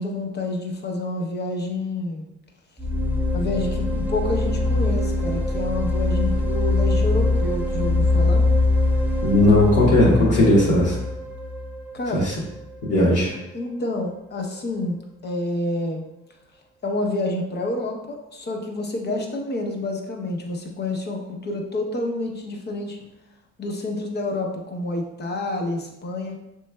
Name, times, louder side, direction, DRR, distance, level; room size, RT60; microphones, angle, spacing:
voice 1, 0.0-2.3 3.3-8.5 11.9-12.3 13.5-16.0 16.8-23.0 23.6-26.4, left 2 dB, 35° left, 1 dB, 0.7 m, -28 dB
sound 1, 2.8-12.6, left 2 dB, 5° right, 0.3 m, -22 dB
voice 2, 9.2-11.0 12.1-12.3 12.8-13.3, left 1 dB, 65° left, -8 dB, 1.3 m, -17 dB
6.8 x 3.1 x 2.2 m, 0.93 s
cardioid pair, 140°, 30 cm